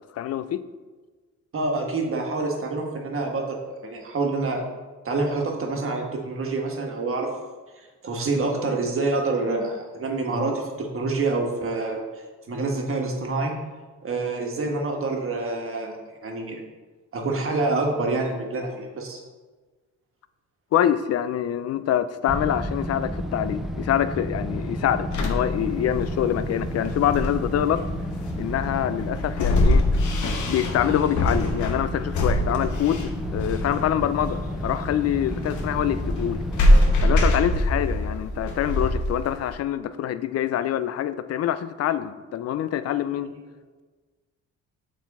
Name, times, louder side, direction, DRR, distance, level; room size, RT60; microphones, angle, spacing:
voice 1, 0.1-0.7 20.7-27.8 28.4-29.8 30.5-36.4 37.0-43.3, left 10 dB, 55° left, 13 dB, 0.4 m, -25 dB
voice 2, 1.5-4.6 5.0-7.3 8.0-12.0 12.5-13.5 14.0-15.9 16.2-16.6 17.1-19.2, right 3 dB, 45° right, 1 dB, 1.4 m, -27 dB
sound 1, 22.3-37.4, equal, ahead, 0.5 m, -31 dB
sound 2, 25.1-39.5, left 1 dB, 75° left, 1.1 m, -24 dB
7.1 x 4.0 x 4.2 m, 1.3 s
cardioid pair, 90°, 30 cm